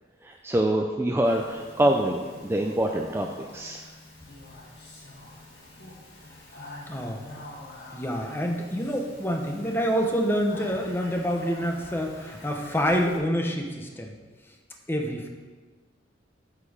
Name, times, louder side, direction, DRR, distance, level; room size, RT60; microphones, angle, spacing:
voice 1, 0.2-3.8, right 1 dB, 15° right, 2 dB, 0.4 m, -25 dB
Speech, 1.2-13.2, left 1 dB, 65° left, 2.1 m, -46 dB
voice 2, 6.9-7.2 7.9-14.1 14.9-15.3, equal, 10° left, 2 dB, 0.9 m, -27 dB
8.3 x 7.4 x 5.0 m, 1.4 s
head